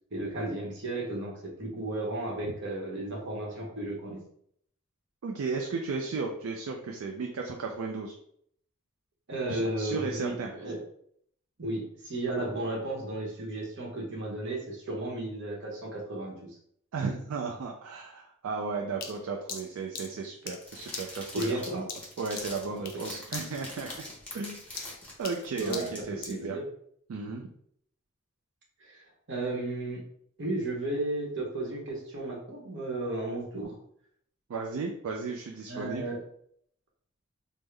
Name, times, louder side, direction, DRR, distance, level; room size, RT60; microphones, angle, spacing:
voice 1, 0.1-4.2 9.3-10.8 11.6-16.6 21.3-21.8 22.7-22.8 25.6-26.6 28.8-30.0 30.4-33.7 35.7-36.2, right 2 dB, 55° right, -1 dB, 0.9 m, -34 dB
voice 2, 5.2-8.1 9.5-10.5 16.9-21.8 22.2-24.0 24.3-24.6 25.2-26.6 27.1-27.5 34.5-36.1, right 4 dB, 70° right, 1 dB, 0.4 m, -34 dB
sound 1, 19.0-23.1 23.3-23.6 23.9-26.4, left 5 dB, 45° left, 0.5 m, -42 dB
sound 2, 20.6-26.2, left 1 dB, 5° left, 0.9 m, -44 dB
3.5 x 2.0 x 3.2 m, 0.67 s
head